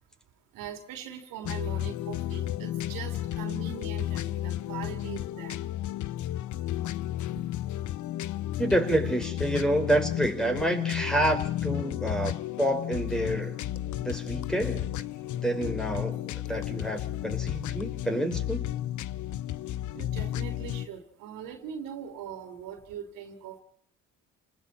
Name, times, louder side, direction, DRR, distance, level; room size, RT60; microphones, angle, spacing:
voice 1, 0.5-5.6 19.9-23.6, right 8 dB, 85° right, 3.7 m, -41 dB
sound 1, 1.4-20.9, left 13 dB, 60° left, 0.8 m, -33 dB
voice 2, 8.6-13.6 14.0-14.9 15.3-18.7, right 1 dB, ahead, 5.0 m, -28 dB
29.5 x 20.0 x 4.4 m
cardioid pair, 85°, 33 cm